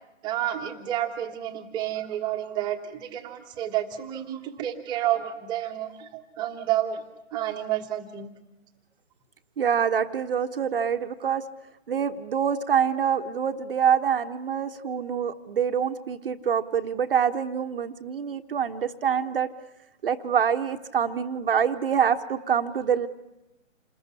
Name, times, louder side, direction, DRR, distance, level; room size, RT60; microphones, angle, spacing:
voice 1, 0.2-7.0 7.3-8.3, right 12 dB, 10° right, 5 dB, 1.4 m, -30 dB
voice 2, 9.6-11.4 11.9-19.5 20.0-23.1, right 7 dB, 45° right, 6 dB, 1.2 m, -25 dB
28.0 x 21.0 x 9.7 m, 0.98 s
hypercardioid pair, 155°, 39 cm